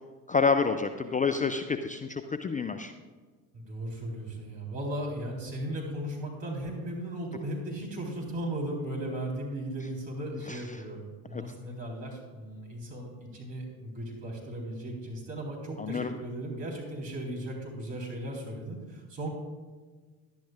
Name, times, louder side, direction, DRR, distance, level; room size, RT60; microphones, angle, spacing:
voice 1, 0.3-2.9 10.5-10.6 11.3-11.4 15.8-16.1, left 5 dB, 15° left, 8 dB, 0.4 m, -28 dB
voice 2, 3.5-19.3, right 1 dB, 60° right, -1 dB, 3.8 m, -36 dB
16.5 x 11.5 x 2.4 m, 1.4 s
figure-of-eight pair, 55°, 49 cm